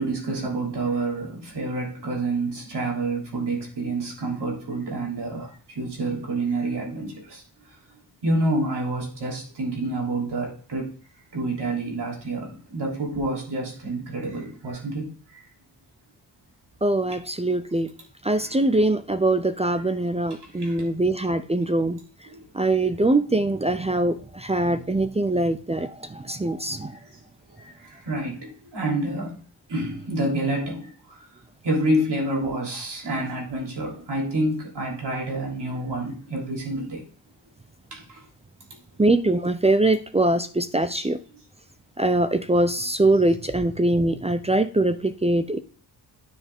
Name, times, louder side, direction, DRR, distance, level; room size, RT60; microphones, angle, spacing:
voice 1, 0.0-7.4 8.2-10.9 11.3-15.4 18.4-18.5 20.3-20.8 22.3-22.4 24.5-24.7 26.9-27.1 27.6-29.4 29.7-31.2 31.6-37.1 37.9-38.2 41.0-41.1, right 2 dB, 65° right, 3.2 m, -28 dB
voice 2, 16.8-17.9 18.2-22.0 22.5-27.0 39.0-41.2 42.0-45.6, right 2 dB, 15° right, 0.5 m, -22 dB
9.7 x 5.7 x 3.6 m
wide cardioid pair, 95°, 44 cm